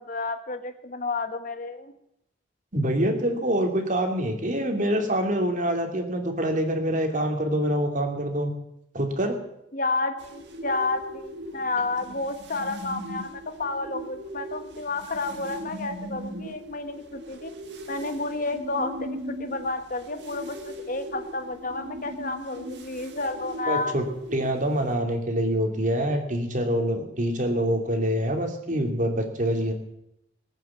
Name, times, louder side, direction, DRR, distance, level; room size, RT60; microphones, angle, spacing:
voice 1, 0.0-1.9 9.7-17.5 17.9-24.0, left 3 dB, 50° left, 8 dB, 1.4 m, -31 dB
voice 2, 2.7-8.5 8.9-9.4 23.7-24.0 24.3-29.7, right 1 dB, 45° right, 4 dB, 2.8 m, -25 dB
sound 1, 10.2-25.0, equal, 70° right, 1.9 m, -39 dB
20.0 x 9.1 x 7.5 m, 0.80 s
head